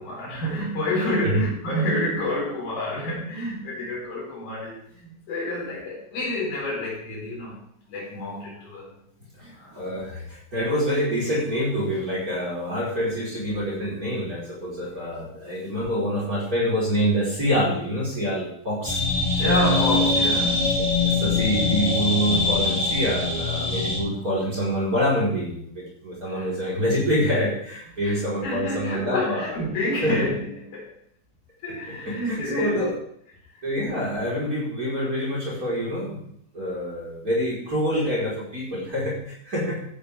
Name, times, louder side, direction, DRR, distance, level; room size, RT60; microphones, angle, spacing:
voice 1, 0.0-7.6 7.9-9.0 9.3-9.8 19.3-20.7 26.3-26.5 28.0-30.9 31.6-32.9 33.5-33.7, left 1 dB, 55° left, -4 dB, 6.0 m, -29 dB
voice 2, 9.4-19.0 21.0-29.5 30.0-30.2 32.0-32.9 33.6-36.2 36.5-39.8, equal, 25° right, -6 dB, 4.7 m, -26 dB
sound 1, 18.8-24.0, left 3 dB, 10° left, 3.0 m, -23 dB
15.5 x 12.0 x 3.6 m, 0.68 s
omnidirectional pair, 4.1 m